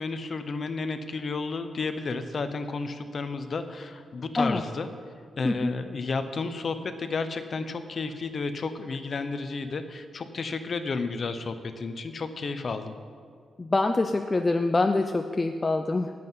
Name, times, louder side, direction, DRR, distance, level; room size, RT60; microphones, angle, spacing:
voice 1, 0.0-4.9 5.4-12.9, left 4 dB, 35° left, 9 dB, 0.8 m, -32 dB
voice 2, 13.6-16.1, left 2 dB, 15° left, 6 dB, 0.4 m, -25 dB
18.5 x 7.7 x 5.6 m, 2.1 s
wide cardioid pair, 180°, 0 cm